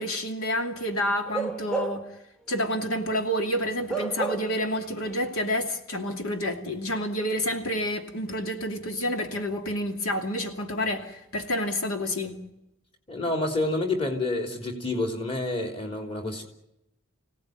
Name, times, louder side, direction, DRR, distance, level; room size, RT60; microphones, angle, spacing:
voice 1, 0.0-2.0 2.5-12.4, equal, 85° left, 5 dB, 2.7 m, -29 dB
Bark / Livestock farm animals working animals, 1.3-2.2 2.6-2.8 3.9-4.7 5.0-5.2, right 5 dB, 5° left, 1.0 m, -31 dB
voice 2, 13.1-16.4, left 2 dB, 25° left, 4 dB, 3.4 m, -28 dB
27.0 x 17.5 x 9.3 m, 0.87 s
head